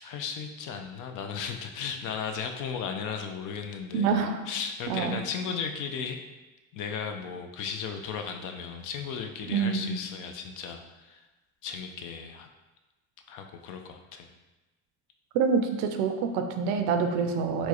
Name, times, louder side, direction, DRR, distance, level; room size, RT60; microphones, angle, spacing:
voice 1, 0.0-4.2 4.5-6.2 6.7-11.3 11.6-12.5 13.3-14.3, left 6 dB, 65° left, 5 dB, 0.5 m, -35 dB
voice 2, 3.9-4.4 4.9-5.2 9.5-10.0 15.3-17.7, right 5 dB, 85° right, 6 dB, 0.5 m, -26 dB
4.4 x 2.2 x 2.9 m, 1.1 s
cardioid pair, 100°, 34 cm